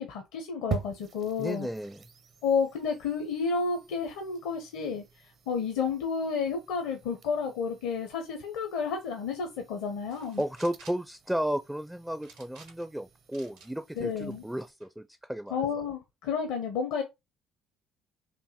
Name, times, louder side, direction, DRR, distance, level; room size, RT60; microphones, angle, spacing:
voice 1, 0.0-1.7 2.4-5.0 5.5-10.4 14.0-14.4 15.5-17.0, left 5 dB, 75° left, 0.7 m, -31 dB
sound 1, 0.7-14.7, right 6 dB, 50° right, 0.7 m, -45 dB
voice 2, 1.4-2.0 10.4-15.6, equal, 5° right, 0.4 m, -33 dB
sound 2, 10.1-11.1 12.2-13.0 13.3-13.7 14.2-14.9, right 5 dB, 80° right, 1.5 m, -53 dB
4.4 x 2.7 x 2.9 m
hypercardioid pair, 65°, 0 cm